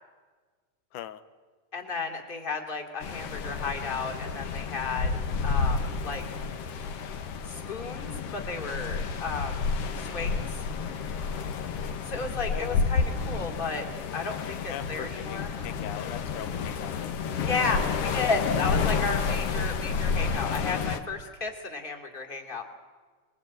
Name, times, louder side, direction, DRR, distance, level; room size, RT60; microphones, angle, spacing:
voice 1, 1.7-6.2 7.4-9.7 10.0-10.7 12.0-13.9 14.1-15.5 17.4-22.6, left 4 dB, 15° left, 3 dB, 2.6 m, -33 dB
sound 1, 3.0-21.0, left 5 dB, 55° left, 2.1 m, -30 dB
voice 2, 12.5-12.8 14.7-17.5 17.9-18.0, left 11 dB, 90° left, 12 dB, 2.5 m, -40 dB
27.5 x 22.0 x 8.9 m, 1.5 s
omnidirectional pair, 3.5 m